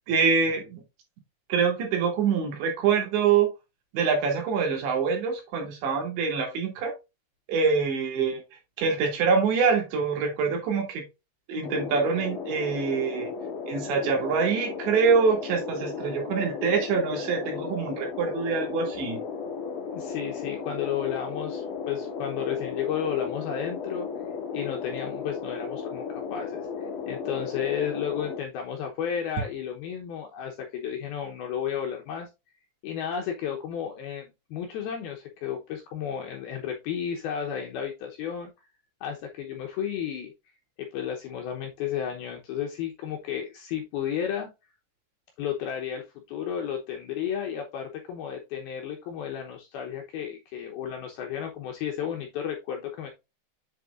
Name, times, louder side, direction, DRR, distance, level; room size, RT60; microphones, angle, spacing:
voice 1, 0.1-0.8 1.5-3.5 3.9-6.9 7.5-8.4 8.8-11.0 11.5-13.3 13.7-19.2, right 5 dB, 70° right, 2 dB, 4.5 m, -25 dB
sound 1, 11.6-28.4, left 5 dB, 55° left, 2.9 m, -35 dB
voice 2, 19.9-24.1 24.5-32.3 32.8-38.5 39.0-40.3 40.8-44.5 45.4-53.1, left 8 dB, 75° left, 2 dB, 2.3 m, -33 dB
7.9 x 6.5 x 2.4 m, 0.24 s
omnidirectional pair, 5.4 m